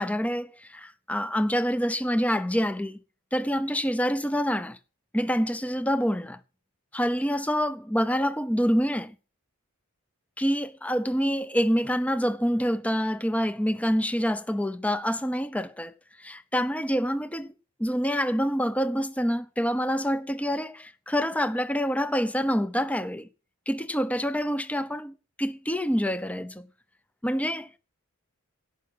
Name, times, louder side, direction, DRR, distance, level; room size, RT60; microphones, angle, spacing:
voice 1, 0.0-3.0 3.3-4.8 5.1-6.4 6.9-9.1 10.4-15.9 16.2-17.5 17.8-23.3 23.7-26.7 27.2-27.7, equal, 5° left, 0.8 m, -26 dB
17.5 x 6.0 x 7.8 m
head